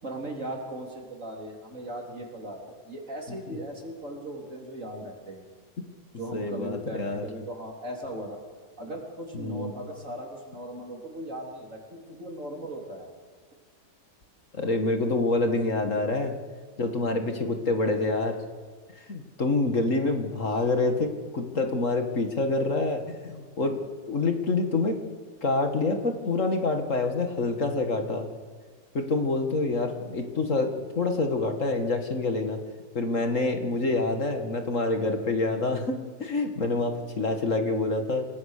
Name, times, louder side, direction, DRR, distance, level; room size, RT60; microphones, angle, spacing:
voice 1, 0.0-5.5 6.2-8.4 8.8-13.1, right 1 dB, 55° right, 1 dB, 4.1 m, -38 dB
voice 2, 6.3-7.2 9.3-9.7 14.5-16.3 16.8-18.4 19.1-23.8 24.1-25.0 25.4-28.3 28.9-32.6 32.9-38.3, left 3 dB, 55° left, 5 dB, 2.2 m, -27 dB
28.5 x 19.5 x 6.7 m, 1.5 s
omnidirectional pair, 1.6 m